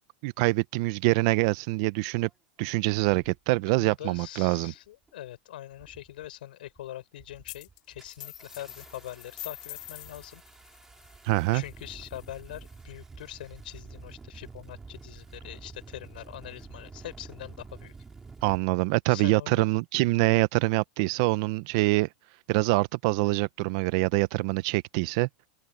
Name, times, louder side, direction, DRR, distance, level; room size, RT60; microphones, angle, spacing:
voice 1, 0.2-2.3 2.6-4.7 11.2-11.6 18.4-22.1 22.5-25.3, right 22 dB, 40° right, 0.4 m, -25 dB
Engine starting, 2.2-2.3 3.0-3.4 4.1-4.4 4.7-5.3 5.7-6.3 6.6-6.9 7.2-18.6, right 4 dB, 10° right, 2.5 m, -49 dB
voice 2, 3.8-10.4 11.5-17.9 19.1-19.7, left 13 dB, 85° left, 3.7 m, -43 dB
sound 1, 7.5-7.8 8.1-12.8, left 20 dB, 50° left, 2.4 m, -46 dB
open air
supercardioid pair, 180°, 5 cm